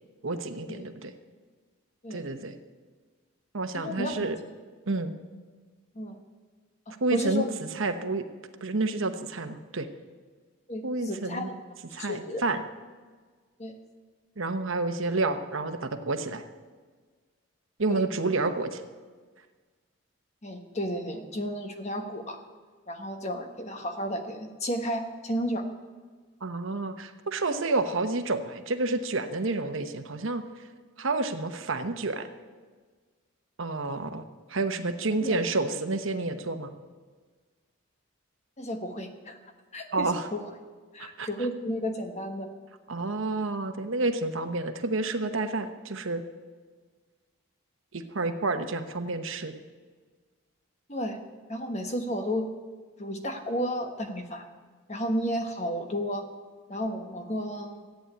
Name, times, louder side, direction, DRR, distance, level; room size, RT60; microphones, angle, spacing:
voice 1, 0.2-1.1 2.1-2.5 3.5-4.4 4.9-5.1 7.0-7.4 7.8-8.2 8.6-9.9 10.8-11.5 11.9-12.6 14.4-16.4 17.8-18.8 26.4-30.4 31.0-32.3 33.6-36.7 39.9-40.2 41.2-41.3 42.9-46.2 47.9-49.5, right 3 dB, 75° right, 8 dB, 1.0 m, -29 dB
voice 2, 3.7-4.3 5.9-6.2 6.9-7.5 10.7-11.5 12.0-12.4 13.6-13.8 17.9-18.0 20.4-22.4 22.9-25.6 35.2-35.4 38.6-39.4 39.7-40.4 40.9-42.5 50.9-51.2 51.5-52.5 53.0-54.5 54.9-56.2 56.7-57.9, equal, 30° left, 5 dB, 1.3 m, -32 dB
14.0 x 9.1 x 8.3 m, 1.5 s
head